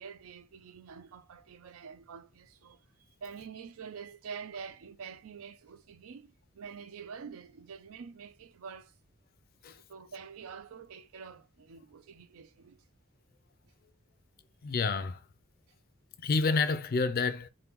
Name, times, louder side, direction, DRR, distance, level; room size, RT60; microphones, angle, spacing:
voice 1, 0.0-8.9 9.7-12.9, right 6 dB, 80° right, 0.4 m, -47 dB
voice 2, 14.6-15.2 16.2-17.5, left 4 dB, 45° left, 0.4 m, -29 dB
3.4 x 2.2 x 2.9 m
head